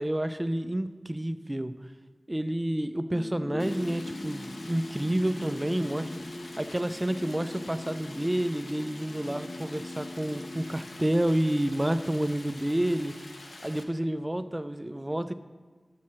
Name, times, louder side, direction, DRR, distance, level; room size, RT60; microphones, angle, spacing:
voice 1, 0.0-1.8 2.3-6.1 6.6-13.2 13.6-15.3, right 1 dB, 20° right, 11 dB, 0.4 m, -29 dB
sound 1, 3.1-11.9, left 1 dB, 40° left, 0.6 m, -40 dB
Stream, 3.6-13.8, left 2 dB, 90° left, 0.9 m, -47 dB
11.5 x 7.4 x 4.3 m, 1.4 s
wide cardioid pair, 70°, 0 cm